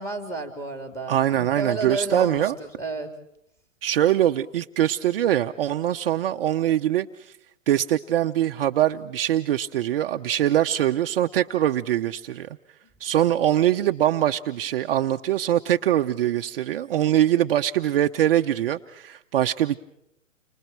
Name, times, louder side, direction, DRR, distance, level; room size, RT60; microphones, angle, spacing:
voice 1, 0.0-3.1, right 2 dB, 5° left, 5 dB, 3.7 m, -31 dB
voice 2, 1.1-2.5 3.8-7.3 7.7-12.6 13.0-19.8, right 12 dB, 45° right, 6 dB, 0.9 m, -23 dB
30.0 x 26.0 x 4.6 m, 0.76 s
hypercardioid pair, 145°, 39 cm